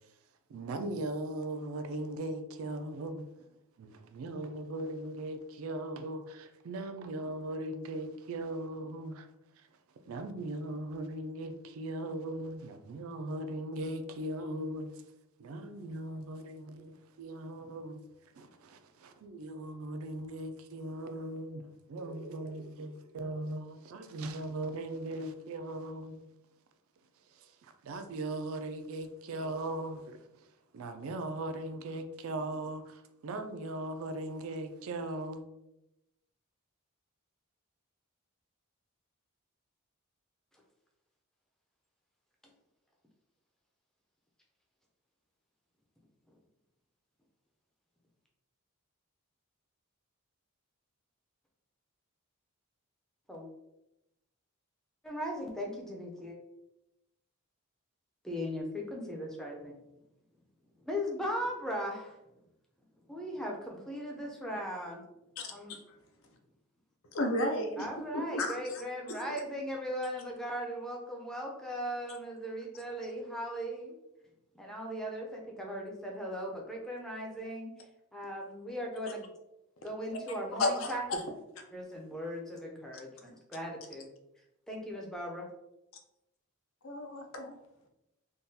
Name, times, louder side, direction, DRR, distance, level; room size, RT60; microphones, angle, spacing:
voice 1, 0.5-3.3 3.8-9.3 10.1-15.0 15.4-18.0 18.3-26.2 27.3-30.4 30.7-35.5, right 1 dB, 70° right, 0.3 m, -39 dB
voice 2, 55.0-56.4 58.2-59.8 60.8-62.2 63.0-65.0 65.5-65.8 67.8-74.0 74.5-79.3 79.8-81.2 81.7-84.1 84.7-85.5, equal, ahead, 0.5 m, -38 dB
voice 3, 65.4-65.8 67.1-67.9 68.1-68.6 80.6-80.9 86.8-87.6, left 1 dB, 65° left, 0.5 m, -32 dB
3.6 x 2.3 x 2.7 m
head